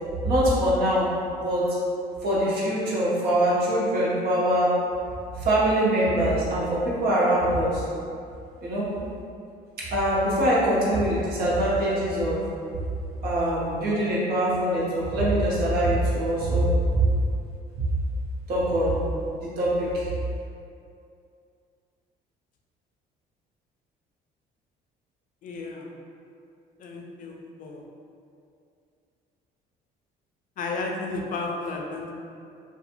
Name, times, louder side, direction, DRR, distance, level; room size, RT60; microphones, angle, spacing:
voice 1, 0.2-1.6 2.2-4.7 5.4-7.8 8.6-8.9 9.9-12.4 13.2-17.0 18.5-19.0 19.6-20.1, right 1 dB, 65° right, -7 dB, 0.8 m, -23 dB
voice 2, 25.4-25.9 26.8-27.8 30.6-32.1, left 3 dB, 50° left, 0 dB, 0.4 m, -33 dB
2.5 x 2.2 x 2.8 m, 2.5 s
cardioid pair, 110°, 17 cm